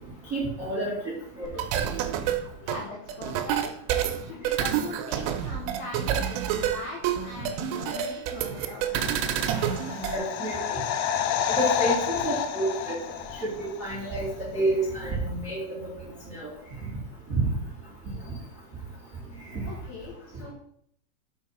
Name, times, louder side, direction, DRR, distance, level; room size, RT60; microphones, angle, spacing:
voice 1, 0.3-0.9 1.4-1.5 10.0-10.8 11.6-12.9 13.4-14.3 14.5-15.6 16.3-16.4 17.3-17.5, right 2 dB, 35° right, -7 dB, 1.3 m, -28 dB
sound 1, 1.4-10.2, right 9 dB, 90° right, 3.3 m, -28 dB
voice 2, 2.6-3.8 4.2-9.7 19.7-20.5, left 3 dB, 70° left, -2 dB, 2.4 m, -41 dB
sound 2, 9.1-13.9 14.2-14.3, left 9 dB, 85° left, 2.6 m, -29 dB
7.6 x 4.8 x 5.8 m, 0.68 s
omnidirectional pair, 5.8 m